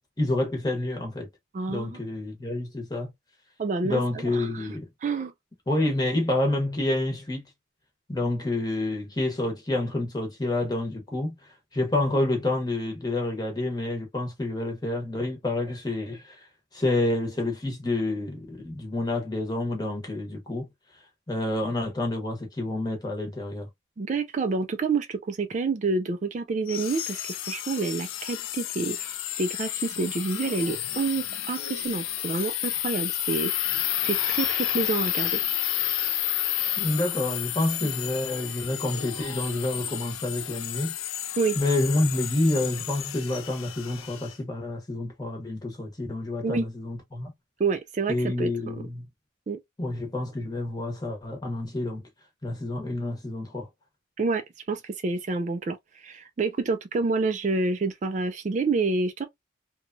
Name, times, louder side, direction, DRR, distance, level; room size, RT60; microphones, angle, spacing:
voice 1, 0.2-1.3 1.7-3.1 3.8-4.9 5.7-7.4 8.1-11.3 11.7-16.4 16.7-20.7 21.3-23.7 36.8-40.9 41.5-47.3 48.1-49.0 49.8-52.0 52.4-53.7, left 2 dB, 20° left, 0.9 m, -28 dB
voice 2, 1.5-2.0 3.6-4.0 4.3-4.7 5.0-5.3 24.0-33.5 34.0-35.4 37.8-37.9 41.4-41.6 46.4-46.7 47.6-48.7 49.5-49.6 54.2-54.4 54.7-59.2, right 4 dB, 35° right, 0.3 m, -28 dB
sound 1, 26.7-44.3, left 12 dB, 85° left, 0.4 m, -31 dB
3.0 x 2.2 x 2.5 m
head